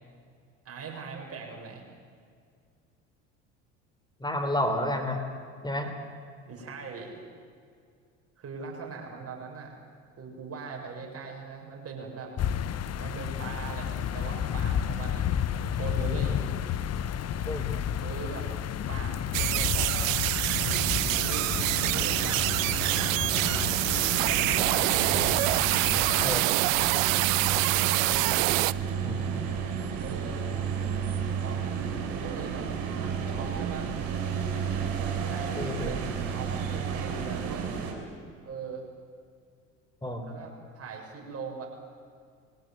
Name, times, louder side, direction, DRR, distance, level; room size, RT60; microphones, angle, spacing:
voice 1, 0.7-1.8 6.5-7.3 8.4-9.8 10.2-12.3 13.0-16.4 18.0-18.5 18.9-20.3 21.2-21.5 21.8-22.4 22.8-23.6 24.1-25.2 25.7-27.1 27.4-28.3 30.0-30.5 31.4-32.7 33.3-33.9 35.0-36.0 36.3-37.8 38.4-38.8 40.3-41.7, right 5 dB, 40° right, 0 dB, 7.0 m, -41 dB
voice 2, 4.2-5.2 5.6-5.9 17.5-17.7 26.2-26.5 29.0-29.5 35.6-36.0 40.0-40.3, left 1 dB, 10° left, 6 dB, 4.3 m, -30 dB
sound 1, 12.4-26.4, left 9 dB, 40° left, 1.1 m, -32 dB
sound 2, 19.3-28.7, right 20 dB, 85° right, 0.5 m, -26 dB
sound 3, 20.4-37.9, right 7 dB, 60° right, 6.1 m, -32 dB
22.5 x 18.0 x 9.2 m, 2.2 s
hypercardioid pair, 80°, 38 cm